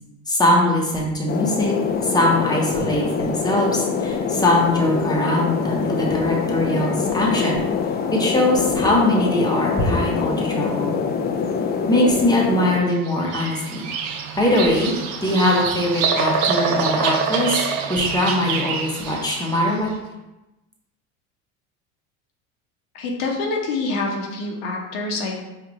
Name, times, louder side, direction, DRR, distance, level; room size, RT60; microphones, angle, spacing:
voice 1, 0.3-1.7 2.0-7.6 8.1-10.9 11.9-13.9 14.4-14.9 15.2-17.6 17.9-19.9, left 1 dB, 10° left, -2 dB, 0.9 m, -21 dB
sound 1, 1.3-12.8, left 5 dB, 25° left, 0.3 m, -24 dB
Bird vocalization bird call bird song, 13.1-19.7, right 5 dB, 55° right, 0.6 m, -25 dB
voice 2, 22.9-25.4, left 3 dB, 80° left, 0 dB, 0.9 m, -26 dB
4.6 x 2.5 x 3.1 m, 1.0 s
hypercardioid pair, 85°, 41 cm